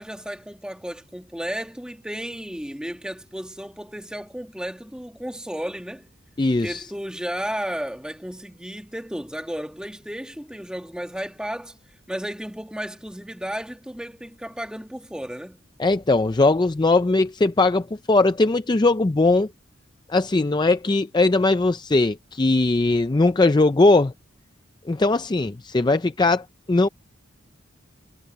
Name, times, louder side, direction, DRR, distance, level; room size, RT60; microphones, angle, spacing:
voice 1, 0.0-6.1 6.6-11.8 12.1-15.6, equal, 5° right, 1.6 m, -33 dB
voice 2, 6.4-6.8 15.8-19.5 20.1-24.1 24.9-26.9, left 2 dB, 20° left, 0.4 m, -20 dB
head